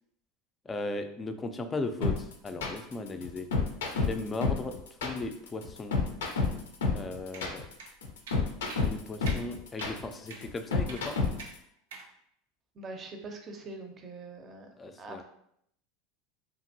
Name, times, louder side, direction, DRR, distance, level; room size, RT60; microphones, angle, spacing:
voice 1, 0.7-3.5 3.9-4.7 5.0-6.0 6.9-7.6 8.8-11.2 14.8-15.2, left 2 dB, 25° left, 7 dB, 0.4 m, -37 dB
sound 1, 2.0-11.6, left 4 dB, 85° left, 0.5 m, -29 dB
sound 2, 7.3-7.5 7.8-7.9 8.3-8.4 8.7-8.9 9.3-9.4 9.8-10.0 10.3-10.4 10.9-11.1 11.4-11.5 11.9-12.1, right 4 dB, 80° right, 0.4 m, -44 dB
voice 2, 12.8-14.7 15.0-15.2, right 3 dB, 35° right, 5 dB, 0.6 m, -43 dB
2.8 x 2.5 x 2.6 m, 0.72 s
hypercardioid pair, 90°, 0 cm